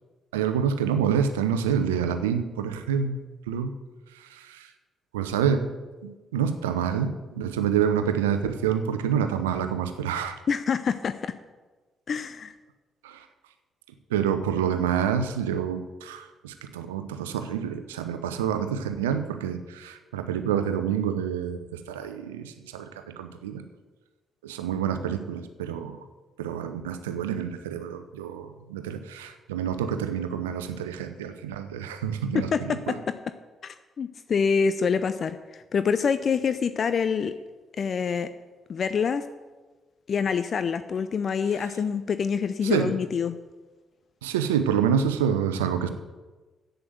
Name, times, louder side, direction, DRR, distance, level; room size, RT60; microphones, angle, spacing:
voice 1, 0.3-3.2 3.5-3.7 4.1-4.7 5.1-5.7 6.0-10.4 13.0-13.3 14.1-21.6 21.9-22.9 23.2-23.6 24.4-26.0 26.4-33.0 42.6-42.9 44.2-45.9, right 8 dB, 90° right, 9 dB, 0.7 m, -27 dB
voice 2, 10.5-11.3 12.1-12.5 32.5-32.8 33.6-37.3 37.8-38.3 38.7-39.2 40.1-43.4, left 6 dB, 55° left, 11 dB, 0.5 m, -26 dB
8.0 x 7.8 x 7.8 m, 1.3 s
hypercardioid pair, 45°, 0 cm